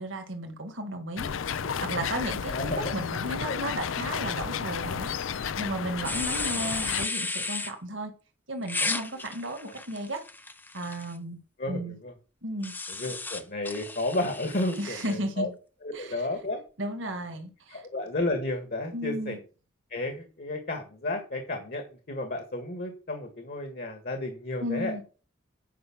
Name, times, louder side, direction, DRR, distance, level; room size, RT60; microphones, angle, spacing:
voice 1, 0.0-1.3 1.8-5.1 5.6-8.1 8.5-10.2 10.7-11.4 11.7-12.0 12.4-12.7 14.8-15.5 15.9-16.2 16.8-17.8 18.9-19.4 24.6-25.0, right 1 dB, 65° right, 1.9 m, -34 dB
sound 1, 1.2-7.1, left 7 dB, 80° left, 0.5 m, -32 dB
voice 2, 2.5-2.9 3.2-3.6 9.6-9.7 11.6-12.1 12.9-15.5 15.8-16.6 17.7-19.4 19.9-25.0, left 2 dB, 50° left, 1.7 m, -32 dB
sound 2, 6.0-7.7 8.7-11.1 12.6-15.2, left 3 dB, 10° left, 0.6 m, -34 dB
9.3 x 5.6 x 6.0 m
head